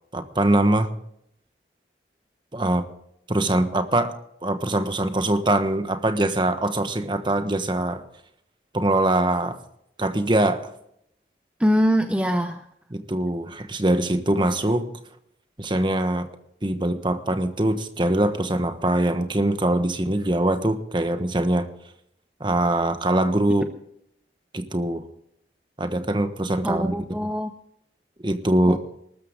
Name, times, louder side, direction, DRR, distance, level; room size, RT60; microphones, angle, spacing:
voice 1, 0.1-0.9 2.5-2.9 3.3-4.2 4.4-8.0 8.7-9.6 10.0-10.7 12.9-14.8 15.6-16.3 16.6-21.7 22.4-23.7 24.5-25.0 25.8-26.9 27.2-27.3 28.2-28.8, right 1 dB, 25° right, 9 dB, 1.3 m, -23 dB
voice 2, 11.6-12.7 26.6-27.5 28.7-28.8, equal, 5° right, 6 dB, 0.7 m, -23 dB
20.5 x 13.5 x 3.7 m, 0.73 s
head